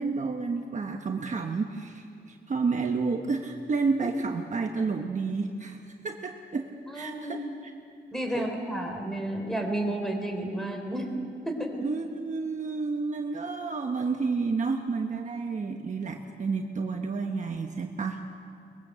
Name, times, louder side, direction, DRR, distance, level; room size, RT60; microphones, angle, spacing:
voice 1, 0.0-5.8 6.0-6.7 6.9-7.7 8.3-8.5 11.8-18.4, right 4 dB, 40° right, 3 dB, 1.1 m, -30 dB
voice 2, 6.9-7.5 8.1-11.1 11.5-11.9, right 1 dB, ahead, 3 dB, 3.5 m, -31 dB
23.0 x 21.5 x 7.5 m, 2.4 s
wide cardioid pair, 145°, 19 cm